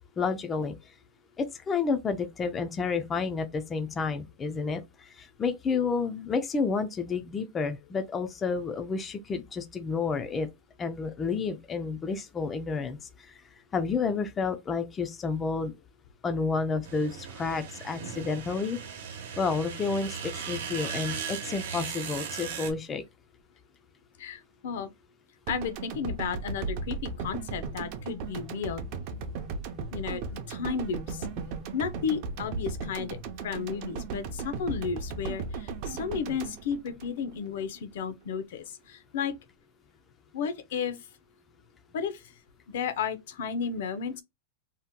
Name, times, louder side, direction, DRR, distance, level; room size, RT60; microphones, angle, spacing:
voice 1, 0.2-0.8 1.4-10.5 10.8-13.4 13.7-15.7 16.2-18.8 19.4-23.0, left 4 dB, 15° left, 0.3 m, -30 dB
sound 1, 16.8-22.7, right 6 dB, 90° right, 0.9 m, -37 dB
voice 2, 24.2-24.9 25.5-28.8 29.9-31.3 31.7-33.2 33.4-39.3 40.3-41.0 41.9-42.2 42.7-44.2, left 6 dB, 70° left, 0.5 m, -33 dB
sound 2, 25.5-37.7, right 4 dB, 45° right, 0.5 m, -36 dB
2.8 x 2.1 x 3.5 m
supercardioid pair, 155°, 0 cm